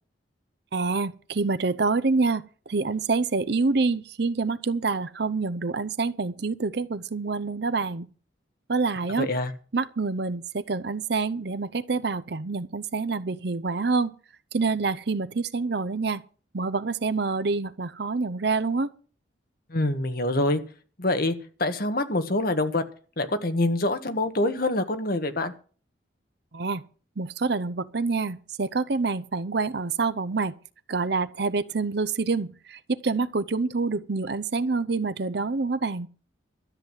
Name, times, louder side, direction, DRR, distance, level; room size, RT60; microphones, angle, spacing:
voice 1, 0.7-2.4 2.7-8.1 8.7-9.3 9.7-14.1 14.5-16.2 16.5-18.9 26.5-26.8 27.2-30.5 30.9-36.1, right 4 dB, 55° right, 0.7 m, -27 dB
voice 2, 9.2-9.5 19.7-20.6 21.0-22.8 23.2-25.5, left 2 dB, 50° left, 1.5 m, -25 dB
13.0 x 8.2 x 7.4 m
head